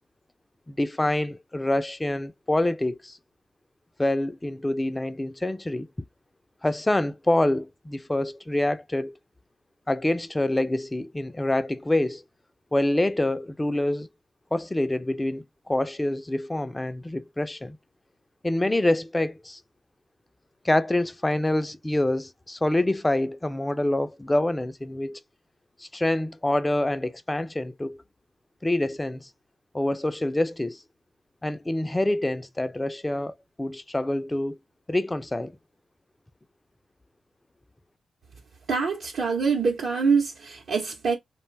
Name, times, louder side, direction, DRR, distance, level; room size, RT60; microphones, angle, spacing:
voice 1, 0.7-3.2 4.0-5.9 6.6-9.1 9.9-12.2 12.7-14.1 14.5-17.8 18.4-19.6 20.6-25.2 25.8-28.0 28.6-29.3 29.7-30.8 31.4-34.6 34.9-35.5, left 1 dB, 20° left, 0.4 m, -26 dB
voice 2, 38.7-41.2, right 5 dB, 75° right, 0.8 m, -24 dB
2.4 x 2.2 x 3.2 m
supercardioid pair, 45°, 0 cm